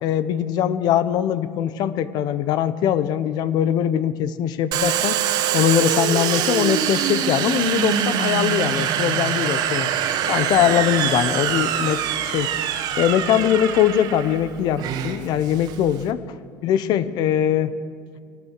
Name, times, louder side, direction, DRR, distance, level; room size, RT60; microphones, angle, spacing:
voice 1, 0.0-5.2 5.5-9.9 10.3-12.5 13.0-16.2 16.6-17.7, left 10 dB, 65° left, 14 dB, 1.0 m, -21 dB
Domestic sounds home sounds, 4.7-16.1, right 9 dB, 60° right, 1.8 m, -24 dB
22.0 x 19.0 x 6.7 m, 2.3 s
supercardioid pair, 100°, 8 cm